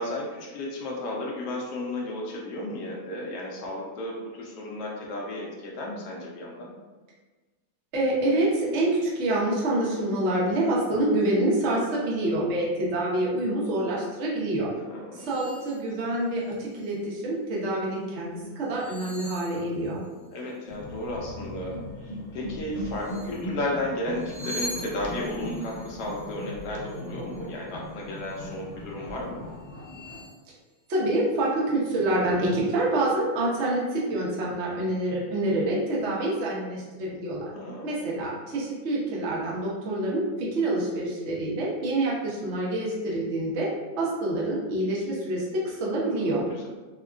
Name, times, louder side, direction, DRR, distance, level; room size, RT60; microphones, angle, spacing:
voice 1, 0.0-6.7 14.9-15.3 20.3-29.4 37.5-37.9 46.1-46.7, left 1 dB, 80° left, -3 dB, 0.8 m, -34 dB
voice 2, 7.9-14.7 15.1-20.0 30.9-37.4 37.8-43.7 44.0-46.4, right 1 dB, 75° right, -5 dB, 0.6 m, -26 dB
sound 1, 15.2-15.8 16.3-17.0 18.6-20.3 22.9-23.4 24.1-27.6 28.0-28.5 29.1-29.2 29.6-30.4, equal, 55° right, 0.9 m, -43 dB
sound 2, 20.7-30.3, left 1 dB, 30° left, 0.6 m, -39 dB
3.5 x 2.2 x 2.4 m, 1.3 s
omnidirectional pair, 2.2 m